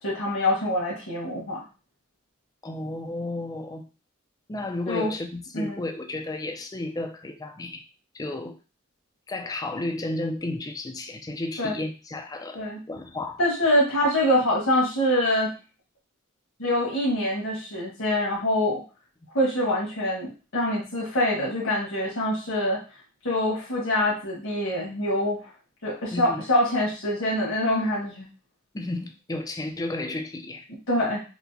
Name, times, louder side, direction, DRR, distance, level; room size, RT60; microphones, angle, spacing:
voice 1, 0.0-1.6 4.9-5.1 5.5-5.8 11.6-11.7 12.5-12.8 13.4-15.5 16.6-18.8 19.3-22.8 23.2-25.4 25.8-28.2 30.9-31.2, left 1 dB, 85° left, -5 dB, 1.2 m, -25 dB
voice 2, 2.6-3.9 4.5-7.8 8.1-8.6 9.3-12.6 12.9-13.4 26.1-26.4 28.7-30.7, left 2 dB, 20° left, 5 dB, 0.4 m, -32 dB
4.4 x 2.1 x 2.6 m, 0.34 s
head